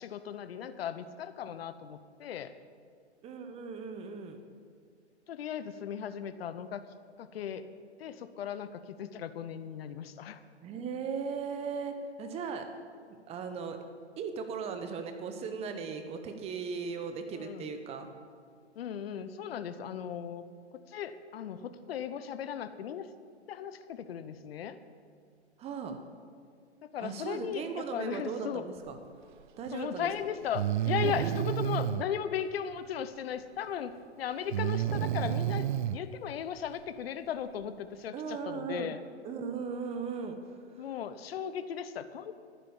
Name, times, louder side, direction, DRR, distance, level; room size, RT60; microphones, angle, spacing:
voice 1, 0.0-2.5 5.3-6.8 7.2-7.7 8.0-10.4 17.3-17.7 18.8-20.5 20.7-23.1 23.5-24.8 26.8-28.7 29.7-39.0 40.8-42.3, left 8 dB, 60° left, 11 dB, 0.9 m, -37 dB
voice 2, 3.2-4.4 10.6-12.6 13.3-13.8 14.2-18.1 25.6-25.9 27.0-29.0 29.6-30.1 31.0-31.4 38.1-38.9 39.2-40.4 40.7-40.8, right 5 dB, 20° right, 7 dB, 1.0 m, -37 dB
Breathing, 29.7-29.8 30.5-32.0 34.5-36.0, right 11 dB, 45° right, 0.4 m, -30 dB
11.5 x 9.4 x 7.2 m, 2.1 s
hypercardioid pair, 130°, 34 cm